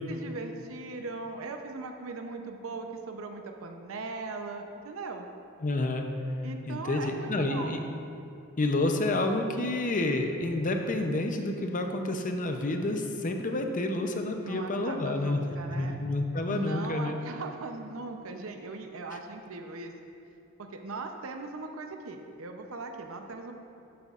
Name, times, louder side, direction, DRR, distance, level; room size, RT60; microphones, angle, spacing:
voice 1, 0.1-5.3 6.4-7.8 14.3-16.0 16.5-19.9 20.6-23.5, right 3 dB, 70° right, 4 dB, 0.7 m, -39 dB
voice 2, 5.6-6.0 6.7-7.8 8.6-15.4 15.8-17.2, left 2 dB, 35° left, 4 dB, 0.6 m, -29 dB
12.0 x 7.7 x 2.5 m, 2.6 s
head